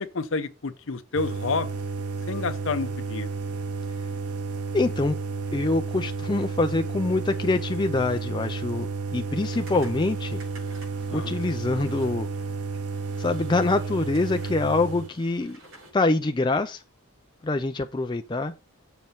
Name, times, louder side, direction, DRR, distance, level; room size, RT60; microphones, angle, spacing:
voice 1, 0.0-1.7 2.3-3.3 11.1-11.3, left 4 dB, 60° left, 0.7 m, -29 dB
sound 1, 1.1-15.1, right 4 dB, 85° right, 0.7 m, -32 dB
voice 2, 4.7-5.2 5.5-10.4 11.1-12.3 13.2-15.6 15.9-16.8 17.4-18.5, left 2 dB, 20° left, 0.4 m, -25 dB
sound 2, 9.5-15.9, right 1 dB, 60° right, 4.7 m, -51 dB
7.4 x 4.5 x 5.5 m
head